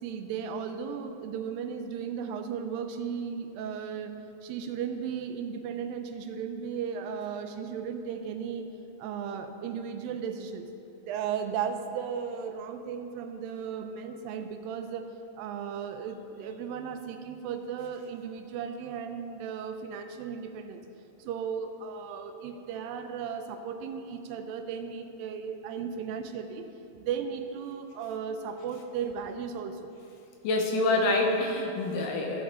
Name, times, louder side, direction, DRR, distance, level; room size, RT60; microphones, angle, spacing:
voice 1, 0.0-4.1 4.4-8.7 9.0-10.7 11.0-15.1 15.4-20.8 21.2-26.7 26.9-29.9, right 7 dB, 85° right, 7 dB, 2.4 m, -35 dB
voice 2, 30.4-32.4, left 2 dB, 75° left, 2 dB, 2.5 m, -26 dB
14.0 x 7.9 x 3.7 m, 2.8 s
omnidirectional pair, 4.0 m